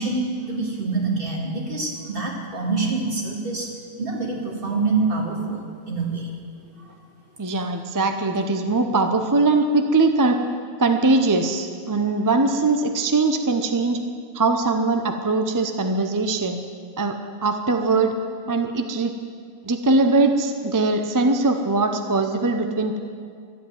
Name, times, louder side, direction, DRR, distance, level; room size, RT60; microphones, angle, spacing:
voice 1, 0.0-3.7 4.0-6.3 6.6-6.7, right 3 dB, 45° right, -1 dB, 2.2 m, -26 dB
voice 2, 7.4-10.4 10.8-14.0 14.3-16.6 17.0-18.1 18.5-19.1 19.6-23.0, right 3 dB, 25° right, 6 dB, 0.4 m, -21 dB
12.5 x 8.1 x 9.2 m, 2.2 s
omnidirectional pair, 1.4 m